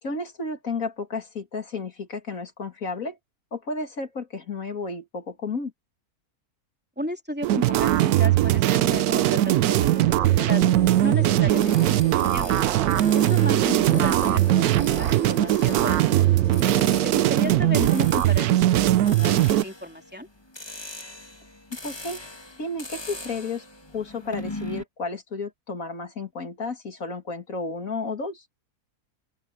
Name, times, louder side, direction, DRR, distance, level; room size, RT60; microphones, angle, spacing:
voice 1, 0.0-3.2 3.5-5.7 13.7-14.1 17.6-18.0 21.8-22.2 22.6-23.6 23.9-28.4, left 3 dB, 65° left, 2.7 m, -32 dB
voice 2, 7.0-10.7 11.0-11.7 12.1-12.6 13.1-16.4 17.0-20.3, equal, 5° right, 3.0 m, -34 dB
sound 1, 7.4-19.6, right 14 dB, 80° right, 1.1 m, -20 dB
sound 2, 10.1-17.6, right 3 dB, 45° right, 2.5 m, -35 dB
sound 3, 11.5-24.8, left 2 dB, 15° left, 2.0 m, -41 dB
open air
omnidirectional pair, 1.6 m